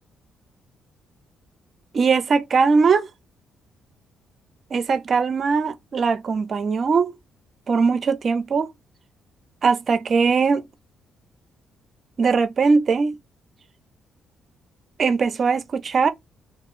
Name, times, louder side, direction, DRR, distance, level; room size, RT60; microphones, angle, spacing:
voice 1, 1.9-3.1 4.7-7.1 7.7-8.7 9.6-10.6 12.2-13.2 15.0-16.1, right 5 dB, 45° right, 0.6 m, -20 dB
2.6 x 2.3 x 3.0 m
cardioid pair, 90°, 0 cm